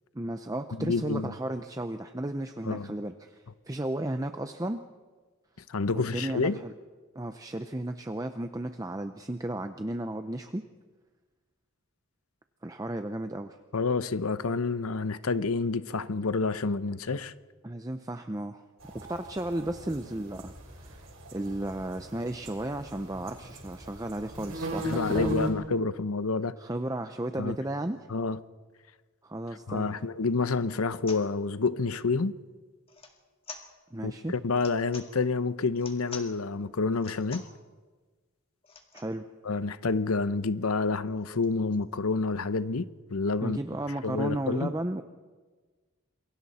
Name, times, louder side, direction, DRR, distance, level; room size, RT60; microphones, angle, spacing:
voice 1, 0.1-4.8 5.9-6.7 7.1-10.6 12.6-13.6 17.6-18.6 18.9-25.4 26.6-28.0 29.2-29.9 33.9-34.3 38.9-39.2 43.4-45.0, right 1 dB, 15° right, 0.6 m, -34 dB
voice 2, 0.8-1.3 2.7-2.9 5.7-6.6 13.7-17.3 24.8-26.6 27.4-27.6 28.1-28.4 29.7-32.3 34.0-37.4 39.4-43.6 44.0-44.7, left 4 dB, 90° left, 0.8 m, -28 dB
sound 1, 18.8-25.5, equal, 75° right, 5.6 m, -37 dB
sound 2, 29.8-29.9 30.4-30.6 31.1-31.2 32.9-33.2 33.4-33.7 34.5-35.1 35.7-36.3 36.9-37.6 38.6-39.1 39.7-39.8 39.9-40.1 40.4-41.8, left 4 dB, 25° left, 2.0 m, -46 dB
28.0 x 22.5 x 4.3 m
head